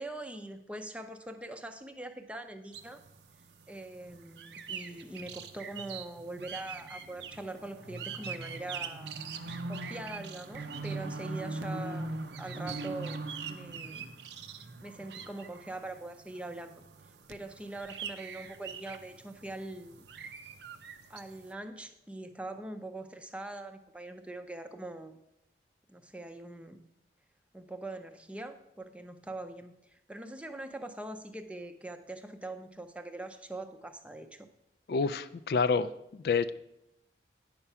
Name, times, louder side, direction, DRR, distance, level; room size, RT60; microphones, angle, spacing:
voice 1, 0.0-3.0 3.7-9.1 9.7-14.1 14.8-16.8 17.3-20.0 21.1-25.2 25.9-26.8 27.5-34.5, right 2 dB, 5° right, 8 dB, 0.5 m, -43 dB
sound 1, 2.7-21.5, right 4 dB, 75° right, 0.7 m, -42 dB
voice 2, 34.9-36.5, left 5 dB, 55° left, 12 dB, 0.3 m, -28 dB
9.8 x 5.9 x 5.5 m, 0.85 s
head